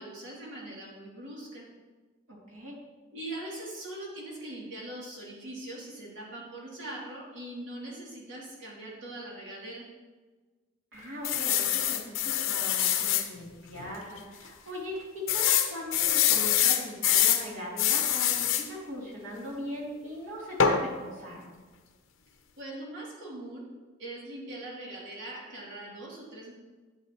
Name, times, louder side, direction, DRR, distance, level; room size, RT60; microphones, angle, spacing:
voice 1, 0.0-1.7 3.1-9.9 22.6-23.7 24.0-26.5, right 1 dB, 70° right, -5 dB, 3.1 m, -41 dB
voice 2, 2.3-2.8 10.9-21.5, equal, 85° right, -4 dB, 3.0 m, -40 dB
sound 1, 11.2-13.3 13.8-13.9 14.2-14.3 15.3-17.4 17.8-18.7 20.6-20.8, left 10 dB, 90° left, 0.8 m, -25 dB
11.0 x 8.4 x 3.1 m, 1.3 s
head